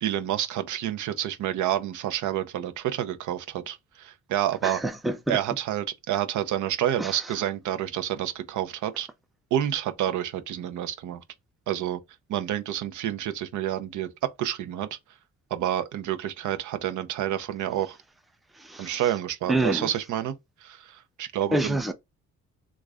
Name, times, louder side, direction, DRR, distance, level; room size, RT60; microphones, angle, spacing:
voice 1, 0.0-4.8 5.3-9.1 9.5-11.2 11.7-12.0 12.3-14.9 15.5-18.0 18.8-20.3 20.6-21.8, right 11 dB, 80° right, 0.6 m, -29 dB
voice 2, 4.6-5.4 7.0-7.2 18.6-19.0 19.5-19.9 21.5-21.9, right 2 dB, ahead, 0.5 m, -27 dB
3.1 x 2.4 x 3.5 m
cardioid pair, 90°, 30 cm